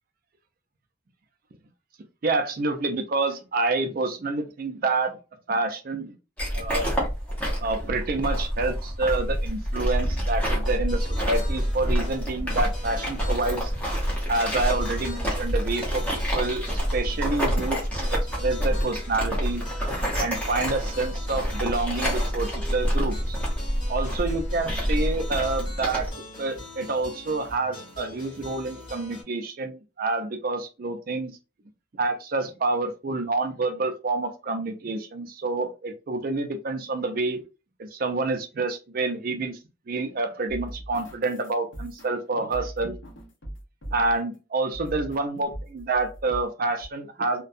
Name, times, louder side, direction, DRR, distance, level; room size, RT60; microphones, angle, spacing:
voice 1, 2.2-5.2 5.5-6.1 6.6-6.9 7.6-13.7 14.3-17.8 18.1-19.6 20.2-23.4 23.9-26.1 26.4-31.4 32.0-37.4 37.8-39.6 39.9-42.9 43.9-47.4, right 3 dB, 45° right, 7 dB, 0.4 m, -28 dB
sound 1, 6.4-26.1, equal, 5° left, 0.7 m, -27 dB
sound 2, 10.6-29.2, left 1 dB, 25° left, 1.5 m, -43 dB
sound 3, 40.5-44.3 44.7-45.3 45.5-46.4 46.8-46.9, right 1 dB, 60° left, 0.8 m, -40 dB
2.6 x 2.2 x 2.4 m, 0.31 s
head